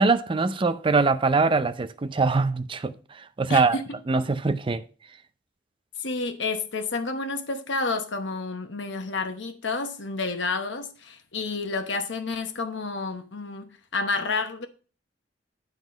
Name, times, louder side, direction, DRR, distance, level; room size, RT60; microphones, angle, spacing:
voice 1, 0.0-2.9 3.4-3.8 4.1-4.8, right 4 dB, 30° right, 0.5 m, -22 dB
voice 2, 3.5-4.0 6.0-14.7, left 3 dB, 85° left, 1.0 m, -30 dB
9.0 x 4.0 x 5.2 m
head